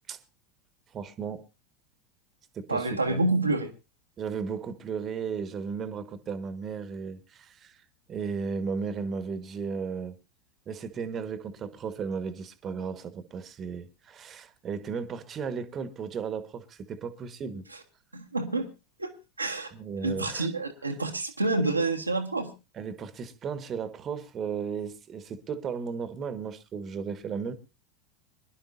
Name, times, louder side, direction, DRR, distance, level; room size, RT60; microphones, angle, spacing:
voice 1, 0.9-1.4 2.5-3.2 4.2-7.8 8.1-10.1 10.7-17.6 19.7-20.5 22.7-27.5, right 6 dB, 30° right, 1.4 m, -35 dB
voice 2, 2.7-3.7 18.1-18.7 19.0-19.1 19.4-19.7 20.0-22.5, right 2 dB, 85° right, 1.6 m, -28 dB
24.5 x 11.5 x 2.6 m
figure-of-eight pair, 80°, 0 cm